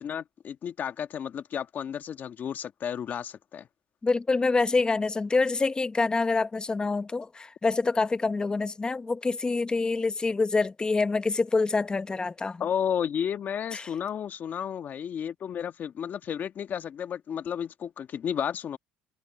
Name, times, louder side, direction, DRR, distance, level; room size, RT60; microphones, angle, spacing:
voice 1, 0.0-3.7 12.6-18.8, left 8 dB, 50° left, 1.4 m, -32 dB
voice 2, 4.0-12.6 13.7-13.9, left 3 dB, 20° left, 1.0 m, -26 dB
cardioid pair, 100°, 4 cm